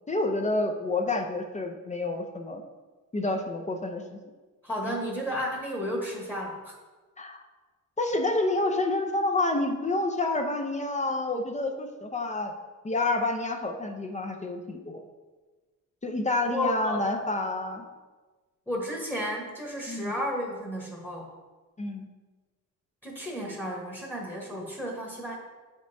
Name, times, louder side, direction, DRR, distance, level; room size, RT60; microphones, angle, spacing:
voice 1, 0.1-2.6 3.1-4.2 4.9-5.0 7.2-7.4 8.0-12.5 12.8-15.0 16.0-17.8 19.9-20.2 21.8-22.1, left 2 dB, 20° left, 4 dB, 0.5 m, -28 dB
voice 2, 4.6-6.7 16.5-17.0 18.7-21.3 23.0-25.4, equal, 5° left, -2 dB, 1.1 m, -32 dB
7.4 x 5.3 x 2.7 m, 1.3 s
cardioid pair, 105°, 34 cm